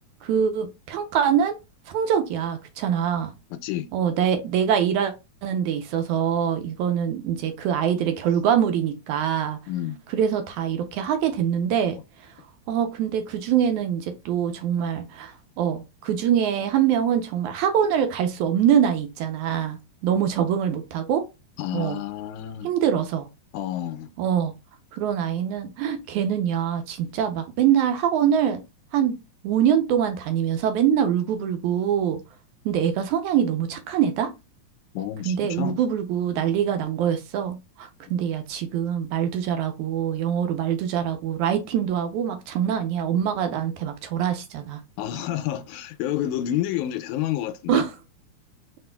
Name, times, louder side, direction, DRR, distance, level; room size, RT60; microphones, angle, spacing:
voice 1, 0.2-1.6 1.9-3.3 3.9-5.1 5.4-9.6 10.1-12.0 12.7-19.8 20.0-21.3 21.7-22.0 22.6-23.3 24.2-24.5 24.9-28.6 28.9-29.2 29.4-32.2 32.7-34.3 35.3-44.8 47.7-47.9, right 9 dB, 80° right, 2.0 m, -24 dB
voice 2, 9.7-10.0 21.6-22.7 23.5-24.1 34.9-35.8 45.0-47.8, left 12 dB, 80° left, 1.9 m, -29 dB
4.5 x 4.2 x 2.2 m
omnidirectional pair, 3.6 m